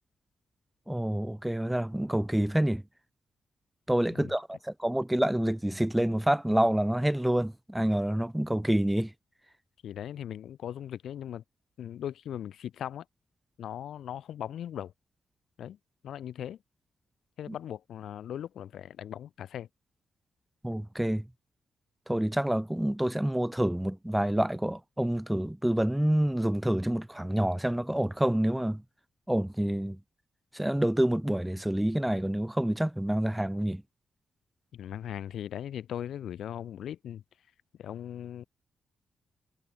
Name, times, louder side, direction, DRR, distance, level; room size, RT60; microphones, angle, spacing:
voice 1, 0.9-2.8 3.9-9.1 20.6-21.2 22.1-28.8 29.3-30.0 30.5-33.8, right 1 dB, 5° right, 0.6 m, -27 dB
voice 2, 9.8-11.4 11.8-13.1 13.6-14.9 15.6-15.8 16.0-16.6 17.4-19.7 34.7-37.2 37.8-38.4, left 10 dB, 75° left, 2.4 m, -39 dB
wide cardioid pair, 165°, 0 cm